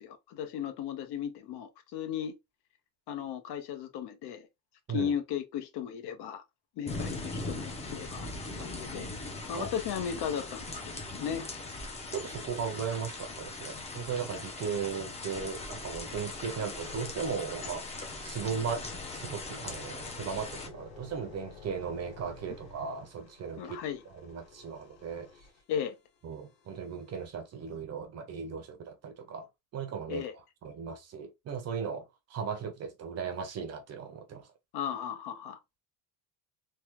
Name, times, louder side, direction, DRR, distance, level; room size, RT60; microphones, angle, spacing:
voice 1, 0.0-2.3 3.1-4.5 4.9-6.4 6.8-9.1 9.5-10.8 11.1-11.4 23.6-24.0 25.7-25.9 30.1-30.3 34.7-35.8, left 8 dB, 70° left, 0.9 m, -36 dB
sound 1, 6.8-20.7, left 2 dB, 15° left, 0.6 m, -40 dB
voice 2, 12.1-23.8 24.1-25.3 26.2-29.5 29.7-30.3 30.6-34.5, right 6 dB, 40° right, 0.6 m, -37 dB
sound 2, 16.3-27.3 27.8-28.0, left 5 dB, 85° left, 1.7 m, -52 dB
3.4 x 2.2 x 2.9 m
cardioid pair, 155°, 41 cm